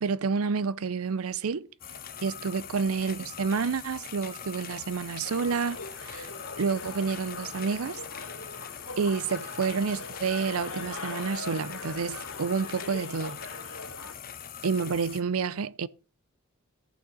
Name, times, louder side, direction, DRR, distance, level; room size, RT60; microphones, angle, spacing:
voice 1, 0.0-1.7 2.2-6.3 6.6-8.0 9.0-13.4 14.6-15.9, right 5 dB, 90° right, 0.5 m, -29 dB
sound 1, 1.8-15.2, left 8 dB, 45° left, 1.0 m, -42 dB
sound 2, 5.2-14.1, left 3 dB, 85° left, 2.4 m, -41 dB
14.0 x 6.3 x 4.2 m
head